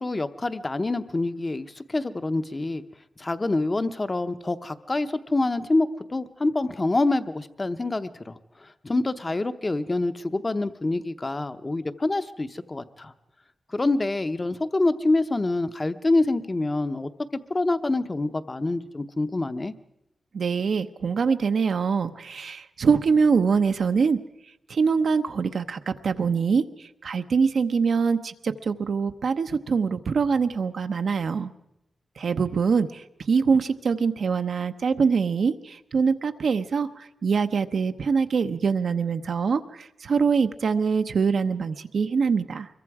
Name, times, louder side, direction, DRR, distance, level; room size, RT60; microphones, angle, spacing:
voice 1, 0.0-2.8 3.2-8.3 8.6-13.1 13.7-17.1 17.5-19.7, left 2 dB, 25° left, 11 dB, 0.8 m, -26 dB
voice 2, 20.3-24.2 24.7-31.5 32.2-42.7, right 5 dB, 65° right, 9 dB, 0.9 m, -24 dB
25.0 x 22.5 x 4.8 m, 0.86 s
wide cardioid pair, 150°, 0 cm